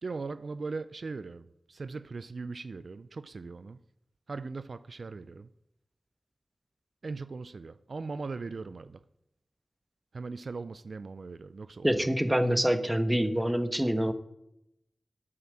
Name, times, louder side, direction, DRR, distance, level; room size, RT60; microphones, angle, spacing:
voice 1, 0.0-3.8 4.3-5.5 7.0-9.0 10.1-12.1, right 4 dB, 70° right, 0.4 m, -39 dB
voice 2, 11.8-14.1, equal, 10° right, 1.2 m, -26 dB
8.7 x 8.6 x 7.5 m
cardioid pair, 55°, 0 cm